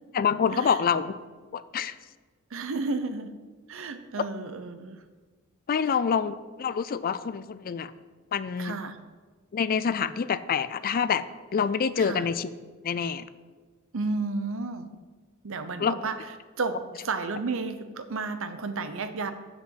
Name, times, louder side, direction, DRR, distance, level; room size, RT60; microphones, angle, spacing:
voice 1, 0.1-1.1 1.5-2.0 5.7-7.9 8.3-8.7 9.5-11.2 11.5-12.5 12.8-13.3 15.8-16.0, left 6 dB, 45° left, 14 dB, 0.4 m, -26 dB
voice 2, 2.5-3.3 3.7-5.0 8.6-9.0 12.0-12.3 13.9-14.9 15.4-16.3 16.6-16.8 17.0-19.3, right 3 dB, 70° right, 10 dB, 0.8 m, -32 dB
7.7 x 5.9 x 7.9 m, 1.4 s
head